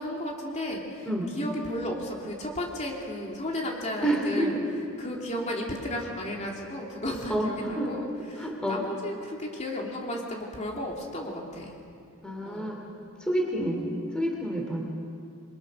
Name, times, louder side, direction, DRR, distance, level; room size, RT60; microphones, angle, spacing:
voice 1, 0.0-4.6 5.0-11.8 12.4-12.8, left 1 dB, 30° left, -1 dB, 3.0 m, -34 dB
voice 2, 4.0-4.5 7.3-7.5 7.8-7.9 8.4-8.8 12.2-12.8 13.2-13.8 14.1-14.8, right 1 dB, 5° left, 0 dB, 2.8 m, -28 dB
29.0 x 22.5 x 6.5 m, 2.5 s
head